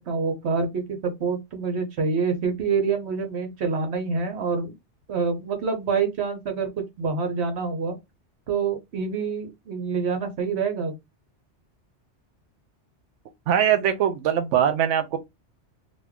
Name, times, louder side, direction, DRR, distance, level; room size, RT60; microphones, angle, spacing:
voice 1, 0.1-4.8 5.1-6.7 7.0-7.9 8.5-10.9, right 5 dB, 70° right, 1.1 m, -26 dB
voice 2, 13.5-15.2, right 9 dB, 85° right, 0.9 m, -21 dB
2.6 x 2.3 x 3.5 m
omnidirectional pair, 1.2 m